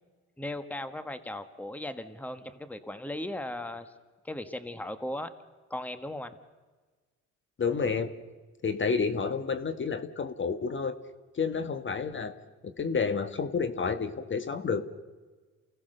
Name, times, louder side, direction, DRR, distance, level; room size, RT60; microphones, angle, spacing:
voice 1, 0.4-3.9 4.2-5.3 5.7-6.4, left 1 dB, 5° left, 10 dB, 1.4 m, -37 dB
voice 2, 7.6-8.1 8.6-11.0 11.3-12.3 12.6-14.8, left 5 dB, 40° left, 10 dB, 1.5 m, -30 dB
28.5 x 17.0 x 6.6 m, 1.3 s
cardioid pair, 90°, 30 cm